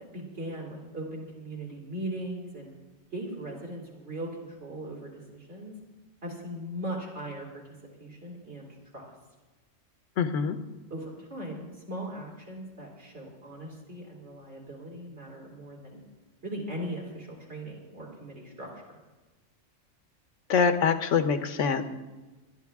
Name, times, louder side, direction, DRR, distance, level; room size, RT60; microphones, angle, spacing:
voice 1, 0.1-2.7 3.1-5.7 6.2-7.6 8.0-8.7 8.9-9.1 10.4-10.5 10.9-16.0 16.4-18.8, right 1 dB, 65° right, -3 dB, 3.9 m, -39 dB
voice 2, 10.2-10.6 20.5-21.8, left 6 dB, 90° left, 9 dB, 1.4 m, -24 dB
21.5 x 12.0 x 3.6 m, 1.2 s
omnidirectional pair, 1.2 m